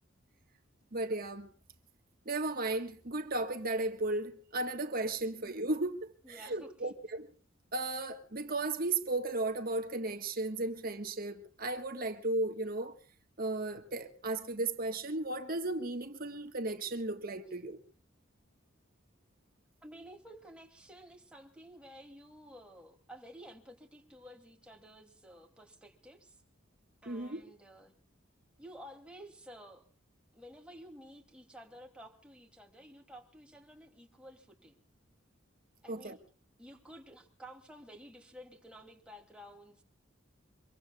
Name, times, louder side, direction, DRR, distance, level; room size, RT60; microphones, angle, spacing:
voice 1, 0.9-1.5 2.2-7.3 7.7-12.9 13.4-17.8 27.0-27.4 35.9-36.2, right 2 dB, 50° right, 1.6 m, -35 dB
voice 2, 6.2-6.9 19.8-26.4 27.0-28.0 28.6-29.9 30.3-34.8 35.8-36.2 36.6-39.8, equal, 5° right, 2.9 m, -52 dB
25.5 x 23.0 x 2.4 m
head